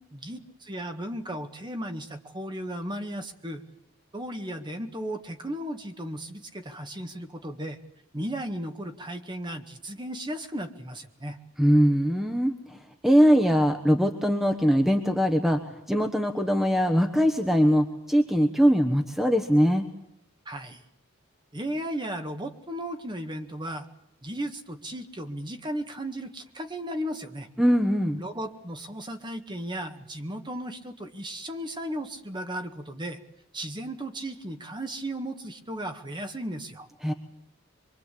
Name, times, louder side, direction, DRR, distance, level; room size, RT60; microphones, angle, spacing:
voice 1, 0.1-3.6 4.1-7.8 8.1-11.4 20.5-20.8 21.5-23.9 24.2-27.5 28.2-33.2 33.5-36.9, right 1 dB, 20° right, 6 dB, 1.8 m, -35 dB
voice 2, 11.6-19.8 27.6-28.2 37.0-37.1, equal, ahead, 6 dB, 1.2 m, -22 dB
24.0 x 24.0 x 8.5 m, 0.78 s
head